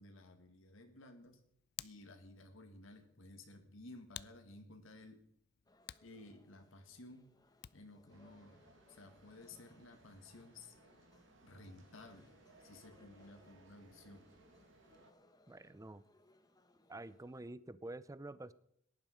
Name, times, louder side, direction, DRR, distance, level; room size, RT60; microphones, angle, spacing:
voice 1, 0.0-1.4 1.8-5.2 6.0-7.3 7.7-10.7 11.4-12.3 12.6-14.3, left 2 dB, 85° left, 5 dB, 1.7 m, -56 dB
Hands, 1.2-8.0, left 13 dB, 55° left, 0.4 m, -56 dB
sound 1, 5.7-17.5, left 1 dB, 20° left, 1.0 m, -69 dB
sound 2, 8.1-15.1, right 2 dB, 70° right, 1.9 m, -65 dB
voice 2, 15.5-16.0 16.9-18.5, right 2 dB, 15° right, 17 dB, 0.5 m, -48 dB
17.0 x 11.0 x 5.0 m, 0.72 s
head